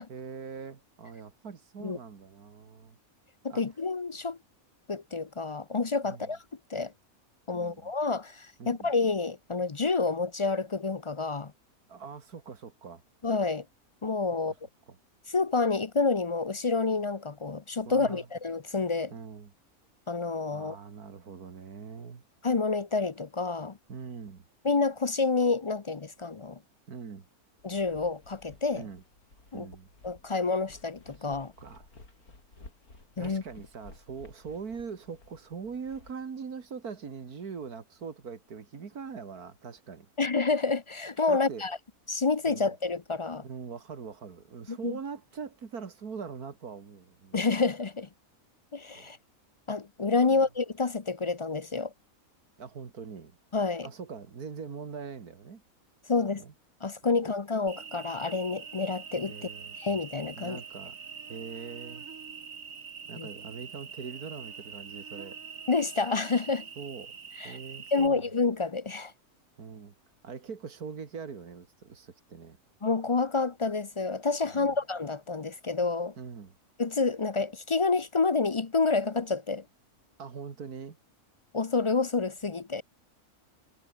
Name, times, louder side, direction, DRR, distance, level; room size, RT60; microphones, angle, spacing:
voice 1, 0.1-3.0 3.5-3.6 6.0-6.3 7.5-7.9 8.6-8.9 11.9-13.0 14.5-14.6 14.9-15.0 17.9-18.3 19.1-19.5 20.5-22.2 23.9-24.5 26.9-27.3 28.8-29.0 29.5-29.9 31.6-31.9 33.2-40.1 41.3-41.6 42.5-42.7 43.4-47.4 48.9-49.1 50.2-50.4 52.6-53.3 53.8-55.6 56.4-56.5 57.1-57.2 59.3-59.8 60.4-61.0 61.3-62.1 63.1-65.4 66.8-67.2 67.4-68.3 69.6-69.9 70.2-72.6 74.5-74.8 76.2-76.6 80.2-81.0, right 6 dB, 90° right, 2.5 m, -42 dB
voice 2, 3.4-4.4 4.9-6.4 6.7-6.9 7.5-11.5 13.2-13.6 14.0-14.5 15.3-19.1 20.1-20.8 22.4-23.8 24.6-26.6 27.6-28.9 29.5-29.7 30.0-31.5 33.2-33.4 40.2-41.7 42.1-43.4 44.7-45.0 47.3-48.1 48.7-49.2 49.7-51.9 53.5-53.9 56.1-56.4 56.8-59.3 59.7-60.6 63.2-63.3 65.7-66.7 67.4-67.6 67.9-69.1 72.8-76.1 76.8-79.6 81.5-82.8, left 4 dB, 35° left, 0.5 m, -28 dB
sound 1, 27.6-36.1, left 3 dB, 80° left, 4.9 m, -55 dB
Cricket, 57.7-68.1, right 6 dB, 60° right, 2.0 m, -44 dB
omnidirectional pair, 1.5 m